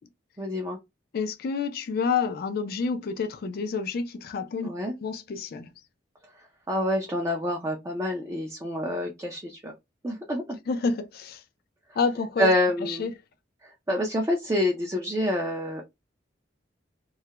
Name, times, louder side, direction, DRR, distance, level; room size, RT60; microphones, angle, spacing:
voice 1, 0.4-0.8 4.6-4.9 6.7-9.7 10.0-10.6 12.4-13.1 13.6-15.8, left 1 dB, 15° right, 0.4 m, -27 dB
voice 2, 1.1-4.7 5.0-5.7 10.7-11.4 12.0-12.5 12.8-13.1, left 5 dB, 55° left, 0.3 m, -28 dB
2.3 x 2.1 x 2.8 m
head